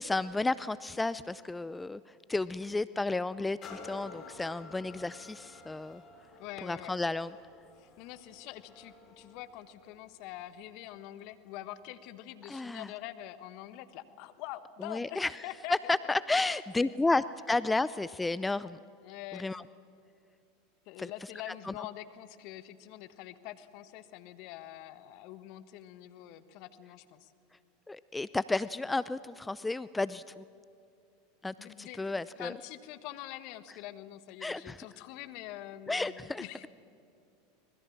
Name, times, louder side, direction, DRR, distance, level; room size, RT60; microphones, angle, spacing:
voice 1, 0.0-2.0 2.3-6.0 6.6-7.3 12.5-12.9 14.9-15.3 15.7-18.8 19.4-19.6 21.0-21.1 21.7-21.8 27.9-30.4 31.4-32.5 34.4-34.8 35.9-36.4, left 2 dB, 10° left, 17 dB, 0.5 m, -32 dB
sound 1, 3.6-11.2 11.8-11.9, left 4 dB, 40° left, 4.6 m, -52 dB
voice 2, 6.4-7.0 7.8-17.1 18.3-18.4 19.0-19.7 20.8-27.3 31.6-36.7, left 13 dB, 55° left, 12 dB, 1.4 m, -45 dB
25.5 x 21.0 x 7.3 m, 2.5 s
hypercardioid pair, 85°, 0 cm